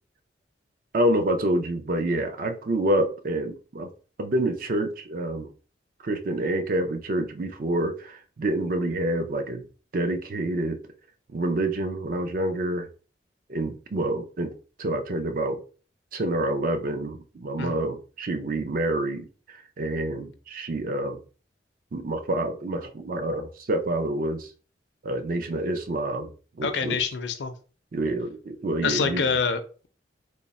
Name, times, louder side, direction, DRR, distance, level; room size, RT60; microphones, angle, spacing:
voice 1, 0.9-3.9 4.2-5.5 6.0-9.6 9.9-10.8 11.3-12.9 13.5-14.5 14.8-15.6 16.1-21.2 21.9-24.5 25.0-26.3 26.6-27.0 27.9-29.4, right 1 dB, 50° right, 8 dB, 0.5 m, -27 dB
voice 2, 26.6-27.5 28.8-29.9, left 5 dB, 75° left, 8 dB, 0.5 m, -26 dB
3.5 x 2.0 x 4.0 m, 0.38 s
head